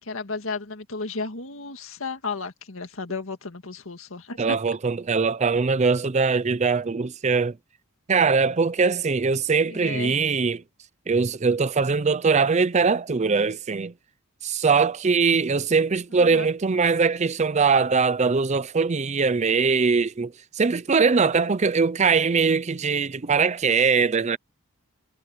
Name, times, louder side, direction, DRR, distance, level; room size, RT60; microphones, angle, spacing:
voice 1, 0.0-4.6 9.6-10.2 16.2-16.5, left 4 dB, 65° left, 2.0 m, -33 dB
voice 2, 4.4-7.6 8.1-10.6 11.1-13.9 14.4-24.4, right 5 dB, 30° right, 0.5 m, -22 dB
head